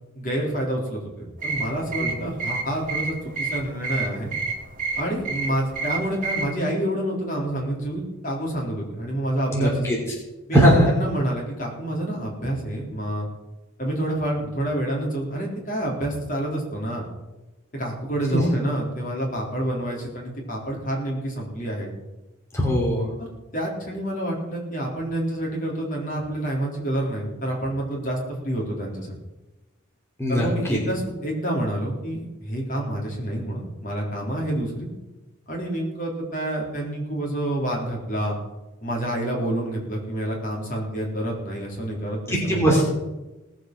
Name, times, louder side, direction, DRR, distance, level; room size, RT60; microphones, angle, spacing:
voice 1, 0.2-4.3 5.0-9.9 10.5-13.3 13.8-17.1 17.7-21.9 23.2-23.3 23.5-29.2 30.3-34.9 35.5-38.4 38.8-42.8, right 1 dB, 40° left, -2 dB, 3.8 m, -28 dB
sound 1, 1.4-6.5, right 4 dB, 40° right, 2.0 m, -30 dB
voice 2, 9.5-10.0 10.5-10.9 18.3-18.4 22.5-23.1 30.2-30.8 42.3-42.8, equal, 15° left, -3 dB, 3.1 m, -19 dB
18.0 x 7.8 x 6.1 m, 1.0 s
head